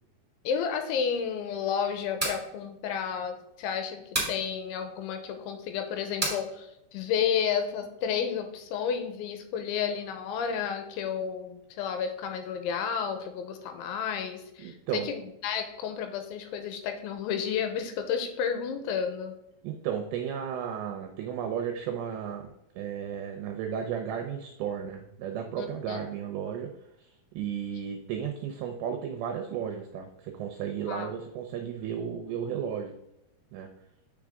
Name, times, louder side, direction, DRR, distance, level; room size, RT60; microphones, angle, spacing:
voice 1, 0.4-4.0 4.3-19.3 25.6-26.0 30.9-31.1, left 7 dB, 80° left, 7 dB, 3.0 m, -31 dB
sound 1, 2.0-2.4 4.1-4.4 6.2-6.4, right 1 dB, 5° right, 1.2 m, -29 dB
voice 2, 14.6-15.1 19.6-26.7 27.0-32.9 33.5-33.7, right 8 dB, 80° right, 4 dB, 2.6 m, -34 dB
7.5 x 6.1 x 3.5 m, 0.85 s
omnidirectional pair, 5.7 m